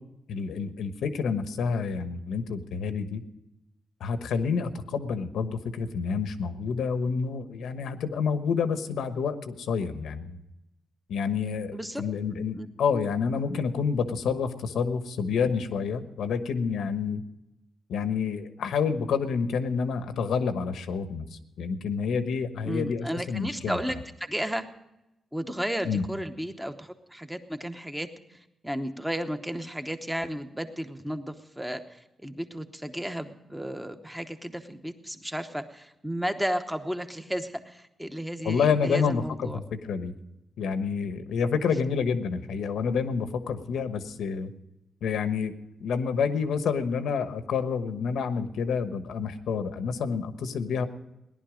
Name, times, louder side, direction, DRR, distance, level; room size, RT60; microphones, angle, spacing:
voice 1, 0.3-3.2 4.0-10.4 11.1-17.2 17.9-21.2 21.6-23.8 25.8-26.1 38.4-40.1 40.6-44.5 45.0-45.5 45.8-50.9, left 6 dB, 90° left, 9 dB, 1.1 m, -28 dB
voice 2, 11.7-12.0 12.5-12.7 22.6-24.6 25.3-28.4 28.6-31.8 32.2-39.6, equal, 5° right, 8 dB, 0.9 m, -33 dB
18.0 x 11.5 x 5.0 m, 0.93 s
wide cardioid pair, 150°, 0 cm